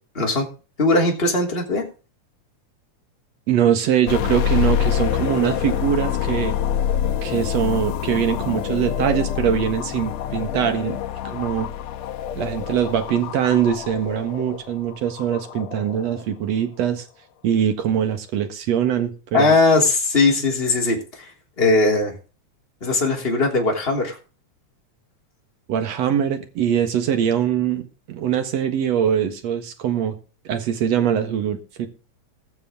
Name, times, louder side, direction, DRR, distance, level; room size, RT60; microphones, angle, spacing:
voice 1, 0.1-0.5 0.8-1.8 19.3-21.3 21.6-22.1 22.8-24.2, left 3 dB, 20° left, 0 dB, 3.2 m, -19 dB
voice 2, 3.5-6.6 7.2-11.0 11.2-11.7 12.4-17.1 17.4-19.5 25.7-30.2 30.5-31.9, right 9 dB, 65° right, 7 dB, 2.6 m, -22 dB
sound 1, 4.1-16.2, left 10 dB, 70° left, 2.0 m, -26 dB
20.5 x 6.9 x 3.7 m, 0.34 s
omnidirectional pair, 3.3 m